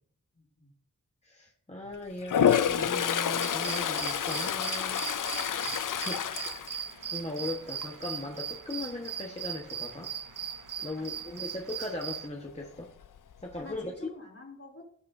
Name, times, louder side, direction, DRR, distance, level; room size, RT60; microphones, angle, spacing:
voice 1, 0.3-0.7 10.8-10.9 11.4-11.5 13.6-14.8, left 3 dB, 50° left, -2 dB, 3.2 m, -49 dB
voice 2, 1.2-5.1 6.0-6.2 7.0-10.1 10.8-12.9 13.4-13.9, left 2 dB, 20° left, 0 dB, 1.3 m, -38 dB
Toilet flush, 2.2-7.4 7.8-8.2 12.7-12.8 13.0-13.8, left 8 dB, 80° left, 0.5 m, -29 dB
sound 1, 3.4-12.3, right 8 dB, 80° right, 0.5 m, -39 dB
17.0 x 6.4 x 2.7 m, 0.63 s
wide cardioid pair, 60°, 31 cm